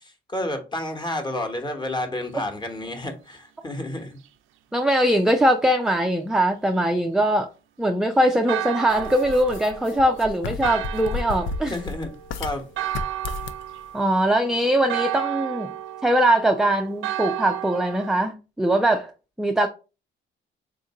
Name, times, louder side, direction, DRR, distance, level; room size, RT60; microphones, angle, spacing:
voice 1, 0.0-4.2 11.7-12.1 12.4-12.6, left 1 dB, 20° left, 1.0 m, -30 dB
voice 2, 4.7-7.5 7.8-11.8 13.9-15.7 16.0-19.1 19.4-19.7, right 1 dB, 5° right, 0.3 m, -21 dB
Church bell, 8.5-18.1, right 13 dB, 90° right, 0.4 m, -33 dB
sound 1, 8.9-12.6 12.9-13.6, left 4 dB, 80° left, 0.5 m, -32 dB
3.6 x 2.5 x 4.0 m
cardioid pair, 90°, 20 cm